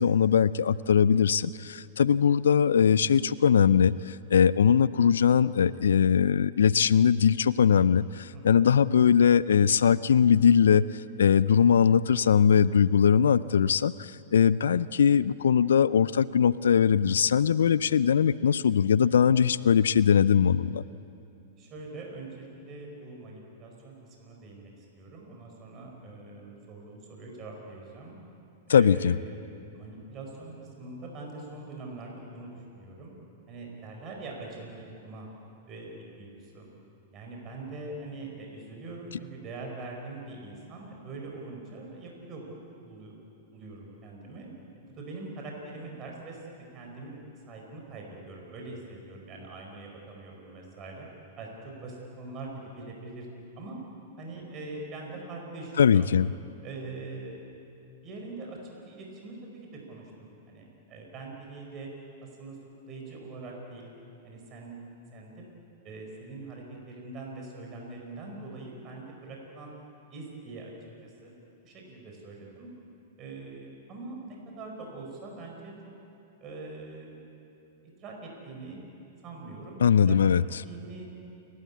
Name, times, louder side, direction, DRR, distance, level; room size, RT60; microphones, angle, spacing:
voice 1, 0.0-20.8 28.7-29.1 55.8-56.3 79.8-80.6, left 7 dB, 75° left, 19 dB, 0.4 m, -21 dB
voice 2, 8.3-8.7 21.6-28.2 28.7-29.4 29.7-33.1 33.5-35.3 35.7-36.7 37.1-43.2 43.5-44.5 44.8-46.4 46.7-47.2 47.5-51.1 51.4-53.3 53.6-53.8 54.2-56.1 56.6-57.4 58.0-58.6 58.9-61.9 62.2-62.6 62.8-63.9 64.2-65.4 65.8-69.7 70.1-71.3 71.6-72.7 73.2-75.7 76.4-77.2 77.8-78.8 79.2-79.8 80.1-80.4 80.6-81.1, right 3 dB, 35° right, 0 dB, 5.0 m, -43 dB
29.5 x 13.0 x 8.5 m, 2.7 s
hypercardioid pair, 105°, 0 cm